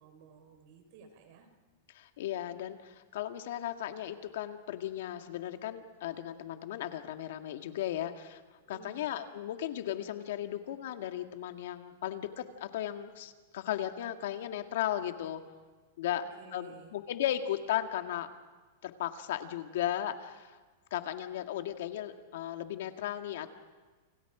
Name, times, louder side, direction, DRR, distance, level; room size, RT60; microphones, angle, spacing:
voice 1, 0.0-1.5 8.6-9.1 16.1-17.0, right 5 dB, 55° right, 6 dB, 4.7 m, -55 dB
voice 2, 1.9-8.4 8.7-15.4 16.0-16.2 16.5-18.3 18.8-20.6 20.9-23.5, left 11 dB, 70° left, 7 dB, 1.9 m, -36 dB
29.0 x 27.0 x 5.0 m, 1.3 s
supercardioid pair, 150°, 0 cm